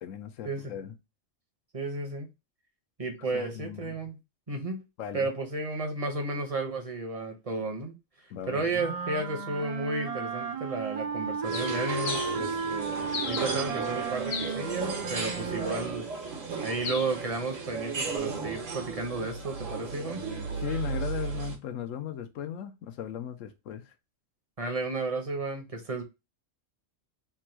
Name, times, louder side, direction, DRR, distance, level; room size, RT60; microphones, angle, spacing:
voice 1, 0.0-0.9 3.3-4.1 5.0-5.3 8.3-8.9 20.5-23.9, left 10 dB, 75° left, 1.0 m, -37 dB
voice 2, 1.7-2.3 3.0-4.2 4.5-4.8 5.1-7.9 8.5-16.0 16.6-20.2 24.6-26.0, right 3 dB, 30° right, 0.8 m, -33 dB
sound 1, 8.7-16.0, right 5 dB, 55° right, 0.4 m, -34 dB
sound 2, 11.4-21.6, right 5 dB, 75° right, 1.4 m, -35 dB
Bird, 11.5-18.2, left 7 dB, 55° left, 0.6 m, -41 dB
3.4 x 2.2 x 4.4 m
omnidirectional pair, 1.4 m